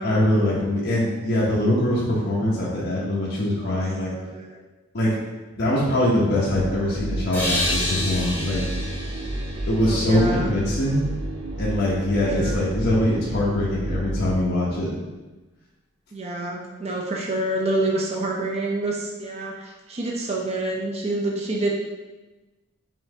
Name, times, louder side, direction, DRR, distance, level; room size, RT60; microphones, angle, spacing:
voice 1, 0.0-4.1 4.9-5.1 5.6-8.6 9.7-11.0 11.6-14.9, left 1 dB, 55° left, -6 dB, 0.9 m, -23 dB
voice 2, 4.2-4.6 9.8-10.5 12.2-12.6 16.1-21.7, right 2 dB, 30° right, -2 dB, 0.5 m, -28 dB
sound 1, 6.5-14.8, right 1 dB, 80° right, 0.7 m, -31 dB
sound 2, 7.3-10.8, left 1 dB, 10° left, 0.9 m, -30 dB
5.6 x 2.7 x 3.3 m, 1.2 s
head